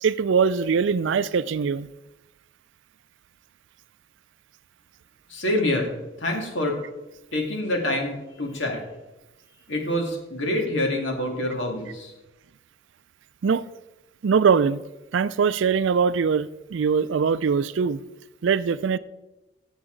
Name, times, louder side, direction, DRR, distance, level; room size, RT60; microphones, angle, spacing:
voice 1, 0.0-1.9 13.4-13.7 14.2-14.8 15.1-18.0 18.4-19.0, right 6 dB, 75° right, 0.4 m, -22 dB
voice 2, 5.3-5.9 6.2-6.8 7.3-8.8 9.7-12.1, left 1 dB, 75° left, 2.1 m, -26 dB
14.5 x 7.0 x 3.8 m
head